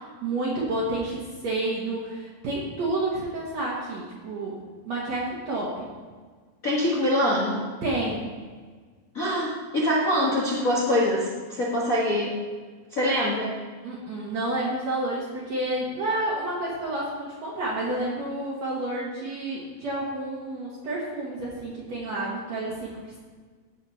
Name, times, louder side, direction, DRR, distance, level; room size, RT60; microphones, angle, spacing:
voice 1, 0.2-5.9 7.8-8.3 13.8-23.2, right 2 dB, 55° right, -5 dB, 2.4 m, -30 dB
voice 2, 6.6-7.6 9.1-12.4 12.9-13.5, left 1 dB, 70° left, -6 dB, 0.8 m, -24 dB
15.0 x 4.9 x 5.6 m, 1.5 s
omnidirectional pair, 4.1 m